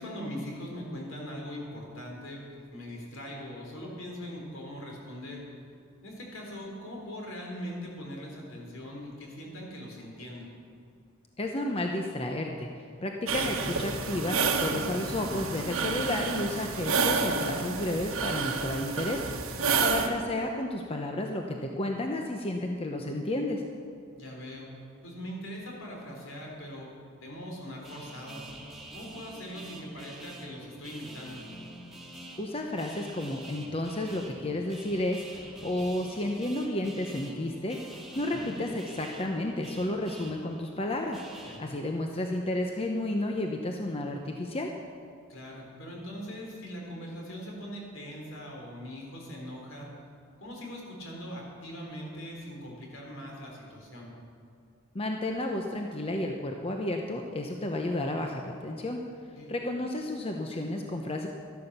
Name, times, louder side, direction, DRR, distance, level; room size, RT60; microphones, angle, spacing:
voice 1, 0.0-5.4 6.0-10.5 19.6-19.8 24.2-24.7 25.0-26.9 27.2-28.4 28.9-31.4 38.3-38.5 41.4-41.6 45.3-49.9 50.4-54.1 59.3-59.5, equal, 70° left, -1 dB, 3.7 m, -41 dB
voice 2, 11.4-12.7 13.0-19.2 19.5-23.6 32.4-35.2 35.6-37.8 38.1-44.7 54.9-59.0 59.5-61.3, left 1 dB, 30° left, 2 dB, 0.8 m, -32 dB
sound 1, 13.3-20.1, right 4 dB, 85° right, 1.3 m, -29 dB
sound 2, 27.8-41.6, right 1 dB, ahead, 2.0 m, -47 dB
13.0 x 11.5 x 6.7 m, 2.5 s
head